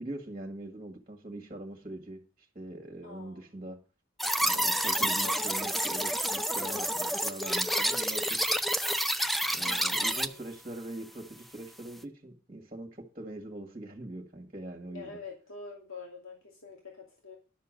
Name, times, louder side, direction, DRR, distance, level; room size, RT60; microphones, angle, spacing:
voice 1, 0.0-3.8 4.4-8.4 9.5-15.2, right 1 dB, 30° right, 2 dB, 1.8 m, -42 dB
voice 2, 3.0-3.5 4.5-5.4 9.6-10.4 14.9-17.4, left 4 dB, 85° left, -1 dB, 2.5 m, -46 dB
sound 1, 4.2-10.3, equal, ahead, 0.5 m, -29 dB
11.5 x 6.8 x 6.4 m, 0.34 s
head